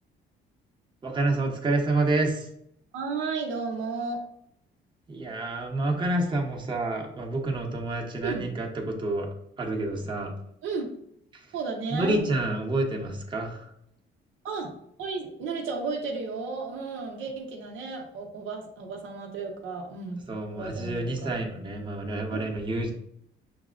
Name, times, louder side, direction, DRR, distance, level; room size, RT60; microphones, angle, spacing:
voice 1, 1.0-2.5 5.1-9.3 9.6-10.3 11.9-13.6 20.3-22.9, right 2 dB, 25° right, 0 dB, 0.8 m, -28 dB
voice 2, 2.9-4.2 8.2-8.5 10.6-10.9 11.5-12.2 14.4-14.7 15.0-20.2 20.5-21.3 22.3-22.5, right 4 dB, 90° right, 2 dB, 0.7 m, -33 dB
5.9 x 2.1 x 2.4 m, 0.70 s
cardioid pair, 90°, 20 cm